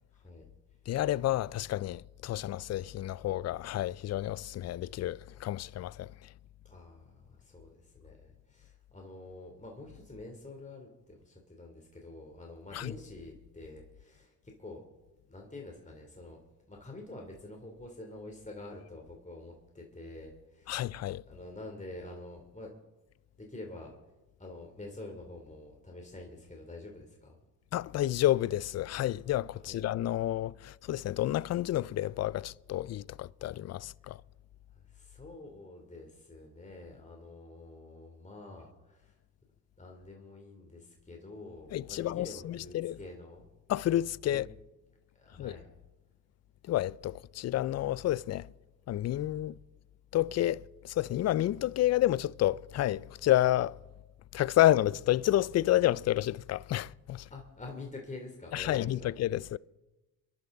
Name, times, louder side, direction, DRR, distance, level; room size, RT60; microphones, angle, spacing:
voice 1, 0.1-0.5 6.6-14.8 15.3-16.4 16.7-20.9 21.3-22.7 23.4-23.9 24.4-27.4 29.7-29.8 34.7-39.2 39.8-43.5 44.3-44.5 45.2-45.7 57.3-59.1, left 2 dB, 15° left, 3.3 m, -47 dB
voice 2, 0.9-6.1 12.7-12.9 20.7-21.2 27.7-34.2 41.7-43.0 43.7-44.5 45.4-45.5 46.7-48.5 48.9-49.6 50.1-53.8 54.3-57.3 58.5-59.6, left 14 dB, 35° left, 0.4 m, -30 dB
27.5 x 11.5 x 4.0 m
hypercardioid pair, 60°, 49 cm